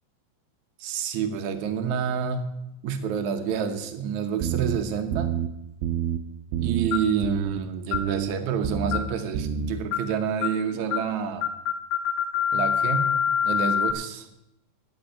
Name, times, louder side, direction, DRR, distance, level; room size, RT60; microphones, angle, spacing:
voice 1, 0.8-2.4 2.8-5.3 6.6-11.5 12.5-14.3, right 7 dB, 65° right, 7 dB, 1.9 m, -28 dB
sound 1, 4.4-4.8 5.1-5.5 5.8-6.2 6.5-6.9 7.2-7.6 7.9-8.3 8.6-9.0 9.3-9.7, right 9 dB, 90° right, 2.7 m, -27 dB
sound 2, 6.9-7.2 7.9-8.1 8.9-9.2 9.9-10.1 10.4-10.6 10.9-11.1 11.4-13.9, left 8 dB, 80° left, 1.8 m, -26 dB
12.5 x 5.3 x 9.1 m, 0.85 s
omnidirectional pair, 4.5 m